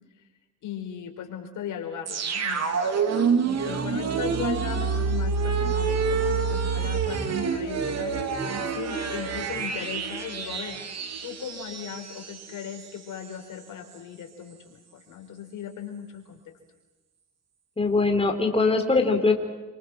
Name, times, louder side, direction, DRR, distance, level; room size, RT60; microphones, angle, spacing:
voice 1, 0.6-3.0 3.6-8.3 8.7-10.8 11.2-16.5, left 8 dB, 80° left, 5 dB, 4.7 m, -38 dB
sound 1, 2.1-12.9 13.2-13.3, right 5 dB, 55° right, 3.4 m, -27 dB
voice 2, 17.8-19.3, left 3 dB, 20° left, 4 dB, 3.8 m, -22 dB
28.5 x 26.5 x 6.2 m, 1.2 s
cardioid pair, 110°, 30 cm